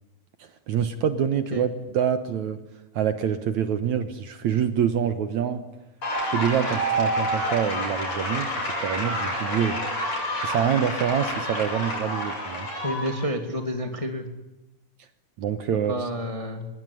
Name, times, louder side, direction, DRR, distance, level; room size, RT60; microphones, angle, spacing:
voice 1, 0.4-2.6 2.9-5.6 6.3-9.8 10.4-12.7 15.4-16.1, right 8 dB, 65° right, 10 dB, 2.2 m, -26 dB
sound 1, 6.0-13.2, equal, 45° left, 9.1 m, -28 dB
voice 2, 12.8-14.3 15.9-16.7, equal, 10° left, 6 dB, 1.7 m, -29 dB
25.5 x 20.5 x 10.0 m, 0.99 s
omnidirectional pair, 4.1 m